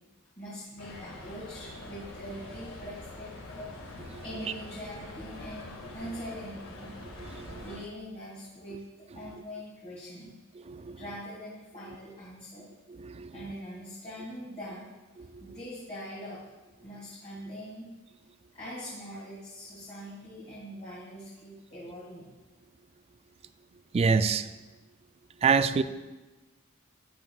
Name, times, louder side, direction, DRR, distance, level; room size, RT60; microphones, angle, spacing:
voice 1, 0.4-3.7 4.2-6.9 7.6-8.8 9.1-10.4 10.9-12.6 13.3-14.9 15.4-16.4 16.8-17.9 18.5-22.3, equal, 30° left, -8 dB, 1.9 m, -42 dB
sound 1, 0.8-7.8, left 2 dB, 80° left, 1.9 m, -44 dB
voice 2, 7.2-7.6 10.7-11.0 13.0-13.5 15.2-15.3 23.9-24.5 25.4-25.8, right 5 dB, 30° right, 12 dB, 0.3 m, -26 dB
12.0 x 8.5 x 2.3 m, 1.2 s
head